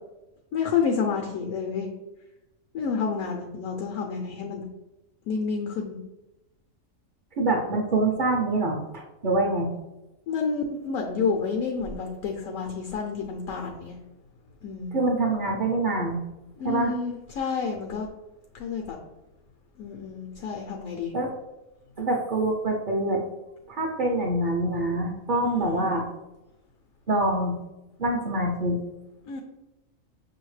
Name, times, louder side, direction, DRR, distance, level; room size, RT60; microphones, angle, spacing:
voice 1, 0.5-1.9 2.7-4.6 5.3-6.0 10.3-13.9 14.6-15.0 16.6-18.1 18.5-19.0 19.8-21.1 25.4-25.9 29.2-29.4, left 5 dB, 75° left, 2 dB, 1.0 m, -29 dB
voice 2, 7.4-9.7 14.9-16.2 16.6-16.9 21.1-21.3 22.0-23.2 23.7-26.0 27.1-27.5 28.0-28.8, right 2 dB, 50° right, -1 dB, 0.6 m, -25 dB
6.0 x 2.8 x 3.1 m, 0.97 s
omnidirectional pair, 1.5 m